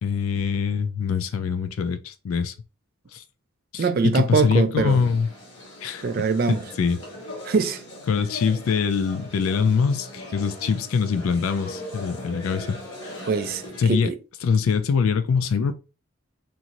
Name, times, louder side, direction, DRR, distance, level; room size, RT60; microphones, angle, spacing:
voice 1, 0.0-2.5 3.1-3.2 3.7-5.3 5.8-6.1 6.5-7.0 8.1-12.8 13.8-14.1 14.4-15.7, left 6 dB, 80° left, 0.3 m, -23 dB
voice 2, 3.8-5.0 6.0-6.6 7.4-7.8 13.3-14.2, right 5 dB, 45° right, 0.3 m, -23 dB
sound 1, 4.8-14.0, left 1 dB, 60° left, 1.1 m, -40 dB
2.6 x 2.5 x 2.9 m
head